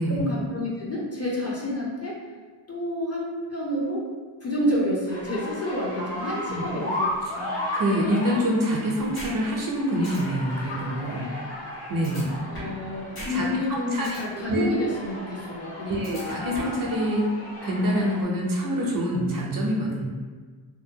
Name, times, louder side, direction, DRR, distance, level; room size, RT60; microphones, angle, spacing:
voice 1, 0.2-2.2 2.7-4.0 4.4-7.5 12.5-16.2, left 1 dB, 35° left, -4 dB, 0.5 m, -29 dB
sound 1, 5.1-18.2, left 1 dB, 75° left, 1.1 m, -35 dB
voice 2, 6.0-6.7 7.3-7.4 7.7-11.3 11.9-12.3 13.3-13.4 13.9-14.7 15.9-17.2 17.6-20.1, equal, 45° right, -2 dB, 0.5 m, -26 dB
sound 2, 9.1-9.3 9.7-9.8 10.0-10.2 12.0-12.8 13.1-13.3 13.7-14.2 16.0-16.8, equal, 50° left, 1.2 m, -38 dB
2.7 x 2.1 x 2.6 m, 1.5 s
wide cardioid pair, 130°, 47 cm